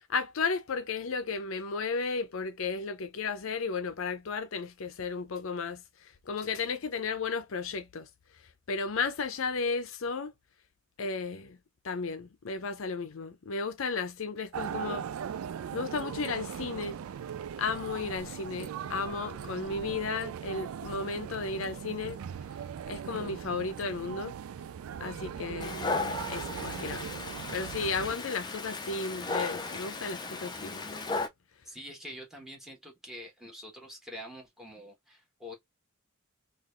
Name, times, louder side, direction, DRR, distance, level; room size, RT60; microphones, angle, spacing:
voice 1, 0.1-5.8 6.3-8.1 8.7-10.3 11.0-11.6 11.8-15.1 15.7-17.1 17.6-22.2 22.9-24.3 25.0-25.8 26.3-27.1 27.5-31.0, left 4 dB, 70° left, 0.6 m, -34 dB
sound 1, 14.5-28.1, right 8 dB, 85° right, 0.3 m, -39 dB
Dog, 25.6-31.3, left 3 dB, 20° left, 0.5 m, -35 dB
voice 2, 31.6-35.5, equal, ahead, 1.4 m, -45 dB
3.8 x 2.5 x 3.1 m
head